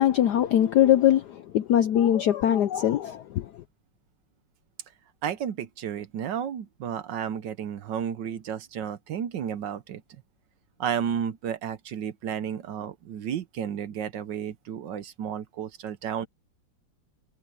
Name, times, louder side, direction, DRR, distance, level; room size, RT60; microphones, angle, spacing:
voice 1, 0.0-3.6, left 11 dB, 75° left, 0.9 m, -22 dB
voice 2, 5.2-10.0 10.8-16.3, right 8 dB, 65° right, 1.3 m, -32 dB
omnidirectional pair, 2.4 m